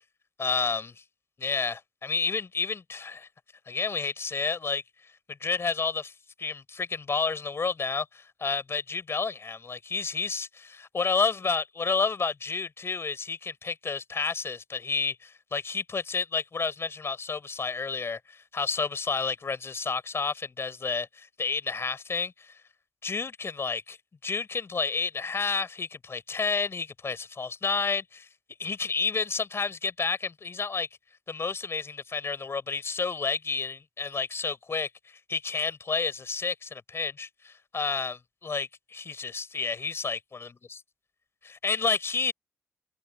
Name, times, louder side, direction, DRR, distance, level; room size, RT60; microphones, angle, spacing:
voice 1, 0.4-0.9 1.4-3.3 3.7-4.8 5.4-6.1 6.4-22.5 23.0-24.0 24.2-28.3 28.6-30.9 31.3-40.8 41.4-42.3, left 4 dB, 45° left, 6.3 m, -30 dB
open air
supercardioid pair, 55°, 6 cm